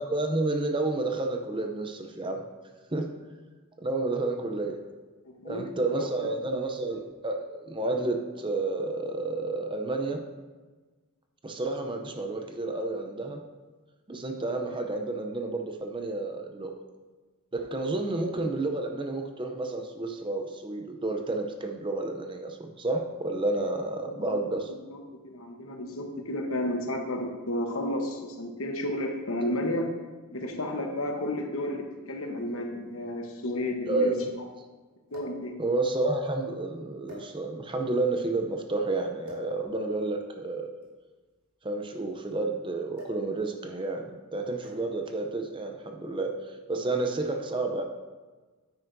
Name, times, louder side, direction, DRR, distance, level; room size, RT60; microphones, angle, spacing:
voice 1, 0.0-2.4 2.9-3.1 3.8-4.8 5.4-10.2 11.4-13.4 14.1-16.7 17.5-24.7 33.9-34.3 35.6-40.7 41.6-47.8, right 2 dB, 20° right, 4 dB, 0.6 m, -30 dB
voice 2, 5.2-6.3 24.0-29.9 30.3-34.5 35.1-35.6, left 1 dB, 65° left, 3 dB, 1.1 m, -32 dB
sound 1, 32.9-33.0 35.1-35.5 36.3-36.5 37.0-37.7 39.2-39.6 40.7-42.3 42.9-43.3 43.6-43.9 44.6-45.0 46.0-46.2, left 2 dB, 80° right, 2.8 m, -48 dB
9.5 x 9.0 x 2.7 m, 1.3 s
head